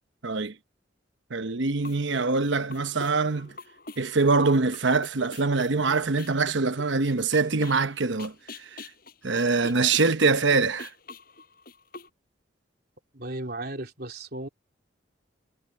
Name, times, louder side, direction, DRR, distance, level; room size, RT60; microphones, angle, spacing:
voice 1, 0.2-0.5 1.3-3.5 4.0-8.3 9.2-10.9, right 4 dB, 70° right, 1.0 m, -24 dB
sound 1, 1.8-12.1, left 3 dB, 50° left, 6.7 m, -45 dB
voice 2, 13.1-14.5, right 2 dB, 55° right, 3.7 m, -35 dB
head